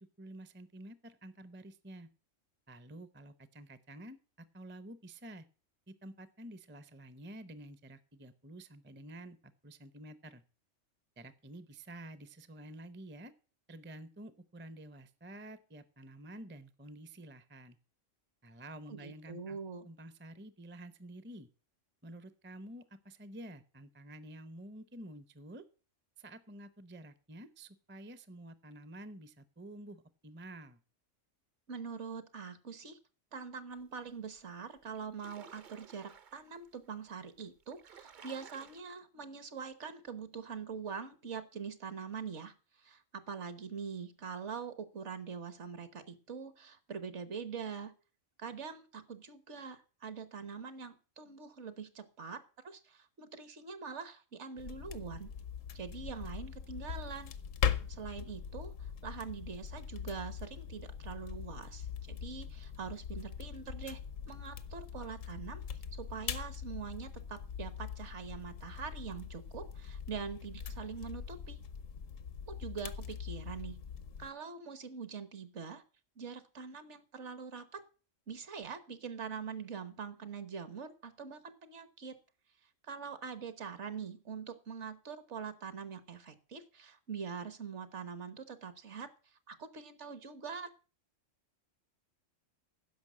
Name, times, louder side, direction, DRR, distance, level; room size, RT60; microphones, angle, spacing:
voice 1, 0.0-2.1 2.7-5.4 5.9-9.4 9.6-10.4 11.2-13.3 13.7-17.8 18.4-19.6 19.8-21.5 22.0-25.6 26.2-30.8, right 1 dB, 15° right, 13 dB, 0.4 m, -50 dB
voice 2, 18.9-19.9 31.7-33.0 33.3-47.9 48.4-55.3 55.7-57.3 57.9-64.0 64.3-65.6 65.9-71.6 72.5-73.8 74.2-75.8 76.2-77.8 78.3-82.2 82.8-90.7, right 6 dB, 65° right, 12 dB, 1.4 m, -44 dB
sound 1, 34.3-34.4 34.8-36.6 37.3-37.4 37.6-38.8, right 7 dB, 50° right, 0.7 m, -55 dB
sound 2, 54.6-74.3, left 7 dB, 85° left, 1.2 m, -41 dB
10.5 x 6.2 x 7.4 m, 0.37 s
omnidirectional pair, 1.3 m